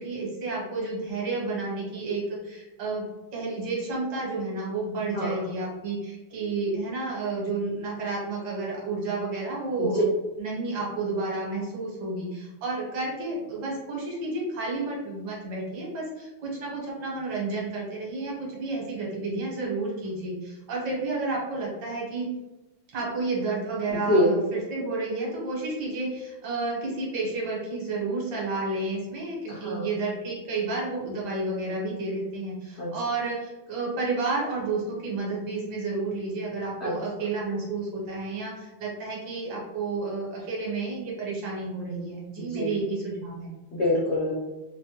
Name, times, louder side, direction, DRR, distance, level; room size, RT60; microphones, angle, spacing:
voice 1, 0.0-3.0 3.3-10.1 10.4-22.3 22.9-43.5, right 3 dB, 65° right, -4 dB, 1.3 m, -31 dB
voice 2, 5.1-5.4 9.8-10.0 24.1-24.3 29.5-29.9 32.8-32.9 36.8-36.9 42.5-42.7 43.7-44.3, left 1 dB, 80° left, -7 dB, 0.6 m, -25 dB
3.2 x 2.1 x 2.7 m, 1.0 s
omnidirectional pair, 2.2 m